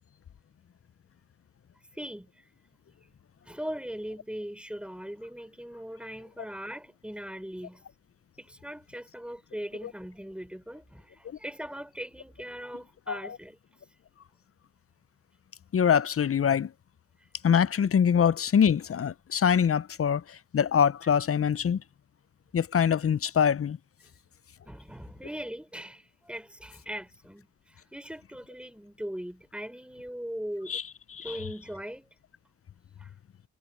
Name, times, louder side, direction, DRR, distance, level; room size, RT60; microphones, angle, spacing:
voice 1, 1.9-2.4 3.4-7.8 8.4-13.6 24.6-30.8 31.2-32.1 33.0-33.1, equal, 5° right, 4.6 m, -40 dB
voice 2, 15.7-16.7 17.4-21.8 22.5-23.8 30.7-30.8 31.2-31.4, left 7 dB, 40° left, 0.6 m, -24 dB
cardioid pair, 55°, 35 cm